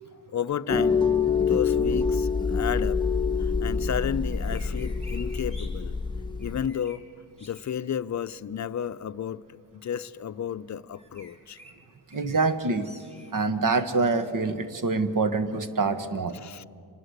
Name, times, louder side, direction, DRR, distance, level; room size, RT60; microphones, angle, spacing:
voice 1, 0.3-1.0 1.3-3.0 3.4-5.9 6.4-7.0 7.4-11.6 16.3-16.7, left 8 dB, 45° left, 0.6 m, -32 dB
sound 1, 0.7-6.7, left 5 dB, 10° left, 1.0 m, -26 dB
sound 2, 4.3-5.7 6.4-7.0 7.4-7.7 10.9-11.7 12.1-12.5 12.8-13.3 13.7-14.3, left 1 dB, 15° right, 4.3 m, -50 dB
voice 2, 12.1-12.9 13.3-16.4, right 3 dB, 55° right, 1.5 m, -25 dB
26.0 x 20.0 x 8.1 m
cardioid pair, 95°, 39 cm